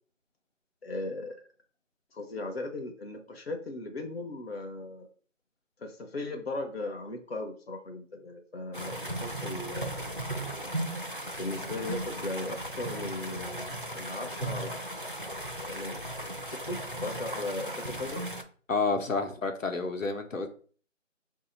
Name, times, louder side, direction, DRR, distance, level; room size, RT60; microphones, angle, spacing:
voice 1, 0.8-1.4 2.1-5.1 5.8-10.0 11.4-14.9 15.6-16.0 16.5-18.3, left 2 dB, 50° left, 0.7 m, -37 dB
sound 1, 8.7-18.4, right 1 dB, 45° right, 0.4 m, -36 dB
voice 2, 18.7-20.5, left 3 dB, 80° left, 1.0 m, -29 dB
4.7 x 2.7 x 3.9 m
figure-of-eight pair, 180°, 38 cm